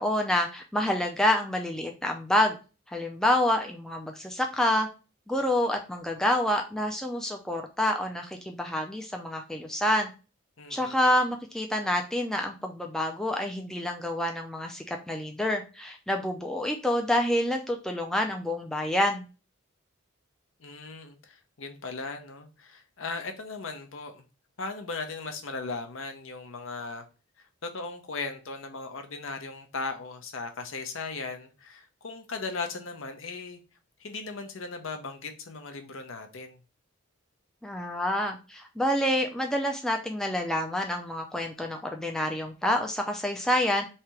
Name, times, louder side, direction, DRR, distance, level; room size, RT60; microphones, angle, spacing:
voice 1, 0.0-2.6 2.9-4.9 5.3-10.1 10.7-19.3 37.6-43.9, left 1 dB, 5° left, 0.3 m, -27 dB
voice 2, 10.6-11.0 20.6-24.2 24.6-27.0 27.4-33.6 34.0-36.6, left 3 dB, 65° left, 0.7 m, -37 dB
3.2 x 2.8 x 4.6 m
head